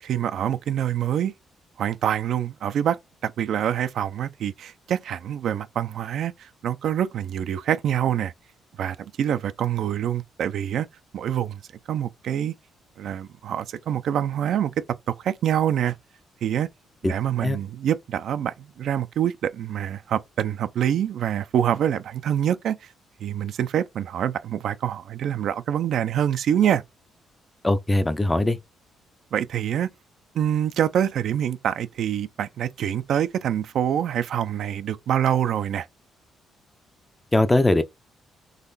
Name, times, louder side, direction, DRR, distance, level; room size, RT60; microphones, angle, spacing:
voice 1, 0.0-1.3 1.8-8.3 8.8-10.9 11.1-11.6 11.9-12.5 13.0-14.7 15.1-16.0 16.4-16.7 17.0-22.8 23.2-26.8 29.3-29.9 30.3-35.9, right 10 dB, 70° right, 0.5 m, -25 dB
voice 2, 27.6-28.6 37.3-37.8, left 1 dB, 15° left, 0.6 m, -20 dB
3.9 x 3.0 x 4.0 m
cardioid pair, 90°, 0 cm